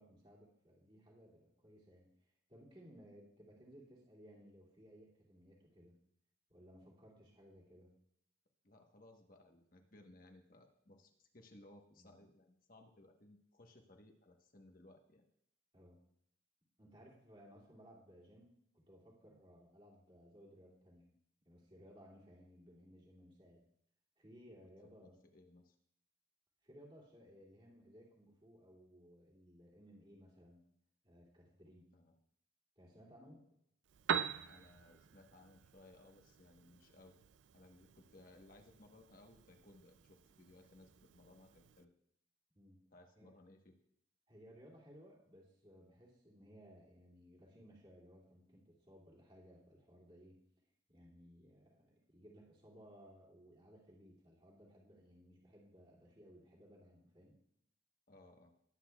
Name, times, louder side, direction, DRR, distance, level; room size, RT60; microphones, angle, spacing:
voice 1, 0.0-6.0 6.5-7.9 12.0-12.2 15.7-16.0 16.8-21.1 21.4-23.6 24.2-25.2 26.6-30.6 31.0-31.9 32.8-33.5 42.5-42.8 43.2-43.3 44.3-50.4 50.9-57.4, equal, 30° right, -5 dB, 2.5 m, -60 dB
voice 2, 8.6-15.3 25.0-25.7 31.9-32.1 34.5-37.1 37.5-41.9 42.9-43.8 58.1-58.5, left 2 dB, 45° left, 3 dB, 1.1 m, -62 dB
Piano, 33.8-41.8, right 7 dB, 65° right, 0.4 m, -45 dB
19.5 x 8.6 x 2.3 m, 0.74 s
head